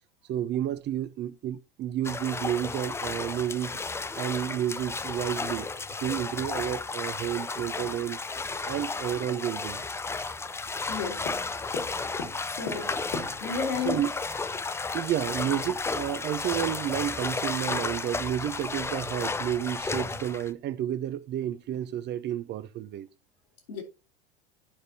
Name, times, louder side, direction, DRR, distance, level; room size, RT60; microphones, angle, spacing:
voice 1, 0.3-3.8 4.2-5.7 6.0-8.2 8.7-9.8 12.0-12.1 13.9-14.1 14.9-23.1, right 11 dB, 35° right, 0.6 m, -31 dB
sound 1, 2.0-20.5, left 3 dB, 10° left, 0.4 m, -33 dB
voice 2, 10.9-11.3 12.4-13.0 13.4-14.0 23.7-23.8, left 5 dB, 75° left, 2.7 m, -32 dB
Tap, 11.2-13.8 14.8-14.9 15.2-15.3 15.7-17.1, left 4 dB, 60° left, 2.2 m, -40 dB
11.5 x 5.1 x 2.8 m
hypercardioid pair, 80°, 29 cm